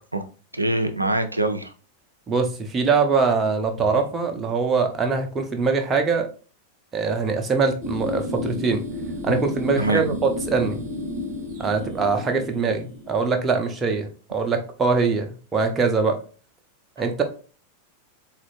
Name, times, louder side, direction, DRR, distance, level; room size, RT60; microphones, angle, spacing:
voice 1, 0.5-1.7 9.8-10.2, right 2 dB, 85° right, 8 dB, 0.4 m, -24 dB
voice 2, 2.3-6.3 6.9-8.8 9.2-10.8 11.6-16.2 17.0-17.2, right 4 dB, 20° right, 4 dB, 0.7 m, -23 dB
sound 1, 7.8-13.3, left 2 dB, 45° right, 1.0 m, -32 dB
4.0 x 2.5 x 3.1 m, 0.38 s
figure-of-eight pair, 90°, 0 cm